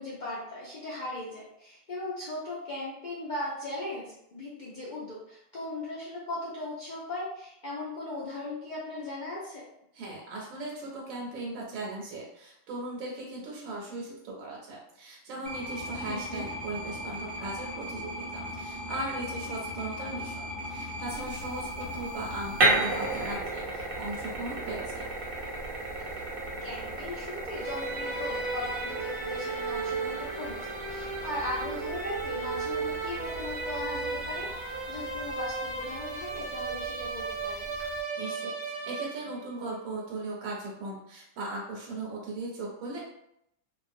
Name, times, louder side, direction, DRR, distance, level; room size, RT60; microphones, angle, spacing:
voice 1, 0.0-4.0 4.3-9.6 16.0-16.5 26.1-26.3 26.6-37.7, left 2 dB, 65° left, -7 dB, 0.4 m, -38 dB
voice 2, 9.9-25.1 38.2-43.0, right 2 dB, 80° right, -2 dB, 1.0 m, -38 dB
sound 1, 15.5-23.3, left 1 dB, 50° left, 0.8 m, -38 dB
sound 2, 21.1-38.0, right 2 dB, 55° right, 0.7 m, -35 dB
sound 3, 27.5-39.6, right 3 dB, 30° right, 0.3 m, -35 dB
2.4 x 2.1 x 2.5 m, 0.77 s
omnidirectional pair, 1.4 m